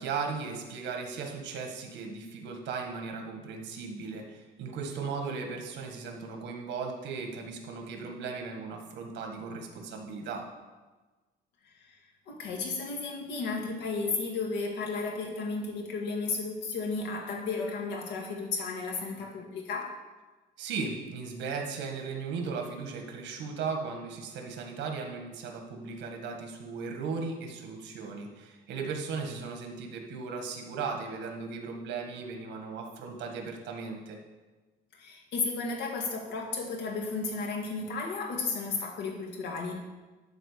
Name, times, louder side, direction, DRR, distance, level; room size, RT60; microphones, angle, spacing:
voice 1, 0.0-10.4 20.6-34.2, right 5 dB, 80° right, 3 dB, 1.7 m, -37 dB
voice 2, 11.6-12.0 12.3-20.0 34.9-39.7, left 4 dB, 85° left, 1 dB, 2.0 m, -33 dB
11.5 x 4.4 x 6.7 m, 1.2 s
cardioid pair, 180°, 18 cm